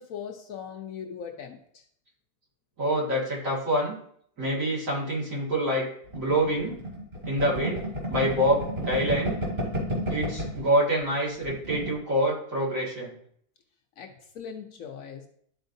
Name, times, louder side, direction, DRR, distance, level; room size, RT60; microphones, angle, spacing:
voice 1, 0.0-1.9 14.0-15.3, left 7 dB, 65° left, 4 dB, 1.0 m, -40 dB
voice 2, 2.8-4.0 4.4-5.9 6.1-6.8 7.2-7.8 8.1-9.4 10.1-13.1, right 1 dB, 55° right, -5 dB, 2.5 m, -26 dB
sound 1, 6.1-10.7 11.0-11.1 11.4-12.0, equal, 35° right, 2.9 m, -32 dB
11.5 x 4.4 x 2.7 m, 0.65 s
omnidirectional pair, 1.7 m